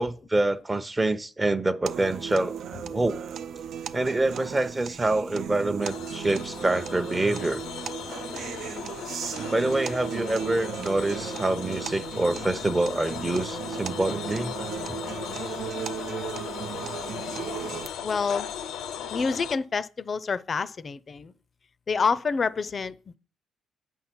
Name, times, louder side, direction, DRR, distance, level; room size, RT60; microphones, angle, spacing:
voice 1, 0.0-2.6 2.9-3.2 3.9-7.6 9.5-14.5 15.4-15.5, right 2 dB, 20° right, 0.7 m, -26 dB
sound 1, 1.9-17.9, right 8 dB, 70° right, 0.4 m, -36 dB
sound 2, 5.8-19.6, left 8 dB, 85° left, 0.5 m, -37 dB
voice 2, 18.0-18.5 19.1-21.3 21.9-23.2, left 5 dB, 40° left, 0.5 m, -28 dB
8.2 x 5.6 x 5.9 m
cardioid pair, 90°, 0 cm